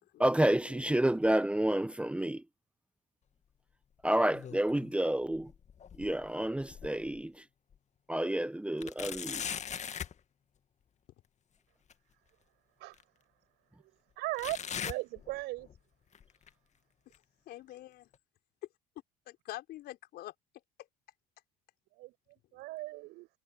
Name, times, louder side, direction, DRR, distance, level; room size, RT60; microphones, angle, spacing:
voice 1, 0.2-2.4 4.0-5.5 6.0-7.5 8.1-9.5, right 1 dB, 5° right, 1.0 m, -29 dB
sound 1, 4.0-5.0 5.3-7.2 7.7-7.8 8.8-10.2 11.9-12.0 12.9-13.0 14.4-15.8 16.1-16.5 17.1-17.2 18.1-18.2, left 8 dB, 40° left, 2.0 m, -41 dB
voice 2, 14.2-15.7 22.0-23.3, right 20 dB, 65° right, 5.6 m, -39 dB
voice 3, 17.5-18.1 19.3-20.3 20.8-20.9 22.5-22.6, left 15 dB, 60° left, 4.5 m, -46 dB
hypercardioid pair, 60°, 19 cm